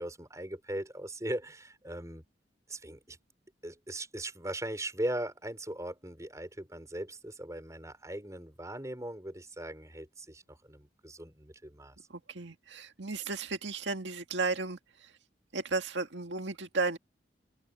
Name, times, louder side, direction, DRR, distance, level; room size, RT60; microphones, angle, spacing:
voice 1, 0.0-2.2 2.7-3.2 3.6-12.0, right 1 dB, 20° right, 4.8 m, -39 dB
voice 2, 12.1-15.1 15.5-17.0, right 3 dB, 85° right, 2.0 m, -34 dB
head